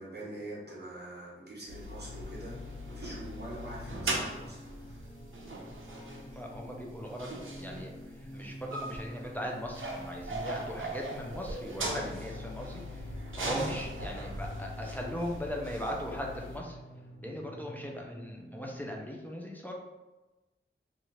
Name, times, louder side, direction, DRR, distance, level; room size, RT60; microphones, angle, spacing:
voice 1, 0.0-2.6 2.9-5.1, right 1 dB, 50° right, -5 dB, 1.0 m, -44 dB
sound 1, 1.7-16.6, right 1 dB, 70° right, 0.6 m, -39 dB
sound 2, 2.0-19.0, left 1 dB, 60° left, 0.7 m, -48 dB
voice 2, 6.2-7.3 7.6-7.9 8.2-13.0 13.4-16.8 17.2-19.7, equal, 10° left, -1 dB, 0.4 m, -39 dB
2.8 x 2.4 x 2.9 m, 1.1 s
wide cardioid pair, 70°, 21 cm